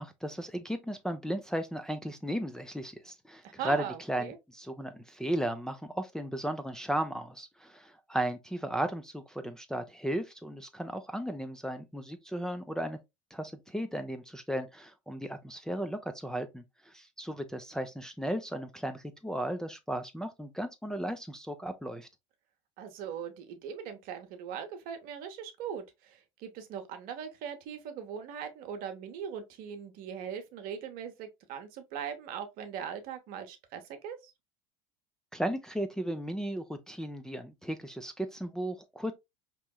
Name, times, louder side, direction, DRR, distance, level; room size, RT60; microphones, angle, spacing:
voice 1, 0.0-13.0 13.3-22.1 35.3-39.1, right 1 dB, 5° left, 0.5 m, -35 dB
voice 2, 3.4-4.4 22.8-34.3, right 8 dB, 60° right, 0.9 m, -40 dB
4.4 x 3.0 x 2.2 m
hypercardioid pair, 80°, 17 cm